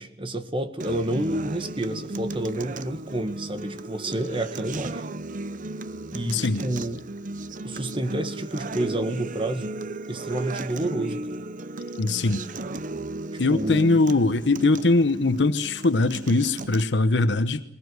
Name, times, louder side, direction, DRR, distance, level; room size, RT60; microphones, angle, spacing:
voice 1, 0.0-5.0 6.1-7.0 7.6-9.7 10.1-11.2 13.5-14.0, right 1 dB, 30° right, 9 dB, 1.7 m, -29 dB
Acoustic guitar, 0.8-16.8, right 2 dB, 45° right, 0.8 m, -35 dB
voice 2, 6.3-6.6 12.0-12.4 13.4-17.6, left 2 dB, 75° left, 11 dB, 1.0 m, -21 dB
21.5 x 20.5 x 8.0 m, 0.78 s
head